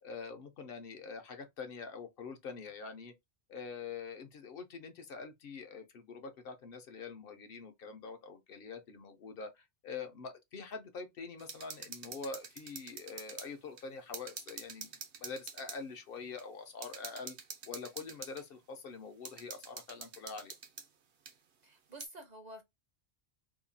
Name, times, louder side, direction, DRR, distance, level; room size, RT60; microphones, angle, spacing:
voice 1, 0.0-3.1 3.5-17.4 17.6-20.6, left 5 dB, 65° left, 0.7 m, -45 dB
sound 1, 11.4-13.5 13.8-13.9 14.1-15.8 16.4-16.5 16.8-18.4 19.3-20.9 21.3-21.4 22.0-22.1, right 6 dB, 75° right, 1.0 m, -46 dB
voice 2, 21.6-22.6, right 1 dB, 50° right, 0.6 m, -49 dB
2.8 x 2.2 x 2.6 m
omnidirectional pair, 1.1 m